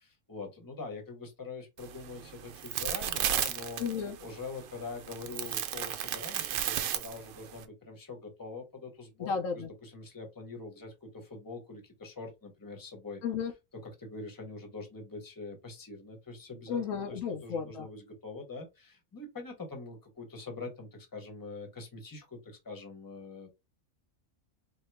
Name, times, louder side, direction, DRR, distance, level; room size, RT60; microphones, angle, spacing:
voice 1, 0.0-3.8 4.2-13.2 13.8-23.5, left 3 dB, 15° left, 0.9 m, -44 dB
sound 1, 1.8-7.6, right 10 dB, 85° right, 1.0 m, -34 dB
voice 2, 3.8-4.2 9.2-9.7 13.2-13.5 16.7-17.9, left 6 dB, 70° left, 0.9 m, -33 dB
4.3 x 2.0 x 3.4 m
omnidirectional pair, 1.5 m